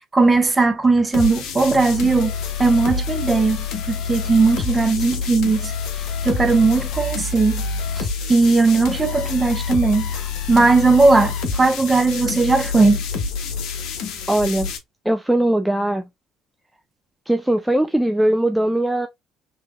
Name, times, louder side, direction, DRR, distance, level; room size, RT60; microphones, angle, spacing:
voice 1, 0.1-2.3 2.6-5.7 6.2-7.6 8.0-10.2 10.5-13.0, right 3 dB, 20° right, 0.8 m, -17 dB
sound 1, 1.1-14.8, left 5 dB, 60° left, 0.7 m, -27 dB
voice 2, 14.3-14.7 15.1-16.1 17.3-19.1, right 1 dB, 5° right, 0.4 m, -20 dB
3.3 x 3.1 x 2.3 m
figure-of-eight pair, 50°, 0 cm